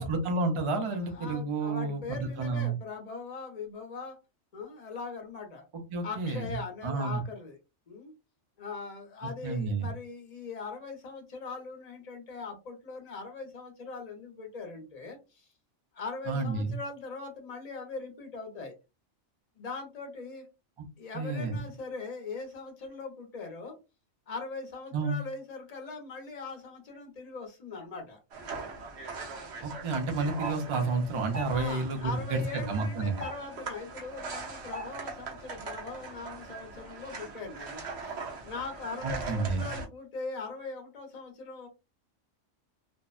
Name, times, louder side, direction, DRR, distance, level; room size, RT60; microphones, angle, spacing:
voice 1, 0.0-2.7 5.7-6.4 6.8-7.2 9.2-9.9 16.3-16.8 21.1-21.6 24.9-25.2 29.6-33.1 39.0-39.6, right 3 dB, 40° right, 4 dB, 0.4 m, -30 dB
voice 2, 0.8-4.2 4.5-5.7 6.0-7.6 7.9-8.1 8.6-15.5 15.9-18.7 19.6-20.5 21.0-23.8 24.3-28.2 31.5-41.7, left 4 dB, 40° left, 3 dB, 0.8 m, -41 dB
sound 1, 28.3-39.9, right 3 dB, 65° right, 1.0 m, -40 dB
2.6 x 2.1 x 2.4 m, 0.27 s
omnidirectional pair, 1.2 m